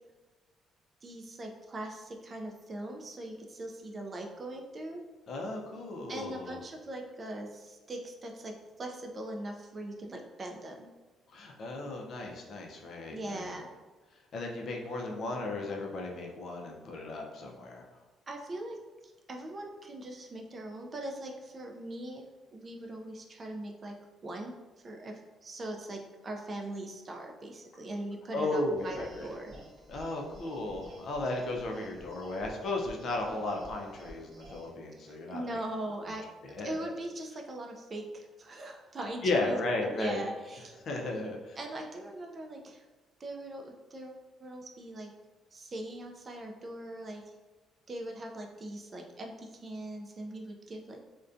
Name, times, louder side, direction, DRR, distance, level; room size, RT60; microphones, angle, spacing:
voice 1, 1.0-5.0 6.1-10.9 13.1-13.7 18.3-18.8 19.0-22.3 22.5-24.0 24.2-24.5 24.8-29.5 34.9-36.2 36.6-39.6 39.9-40.8 41.6-42.8 43.2-45.1 45.5-47.2 47.9-51.0, right 1 dB, 30° right, 2 dB, 0.3 m, -41 dB
voice 2, 5.3-6.6 11.3-13.6 14.3-17.8 28.3-29.3 29.9-35.6 36.5-36.9 39.2-40.2 40.8-41.6, left 2 dB, 55° left, 0 dB, 0.4 m, -35 dB
sound 1, 28.8-34.7, right 1 dB, 60° right, 0.7 m, -51 dB
2.5 x 2.1 x 2.4 m, 1.2 s
cardioid pair, 125°, 0 cm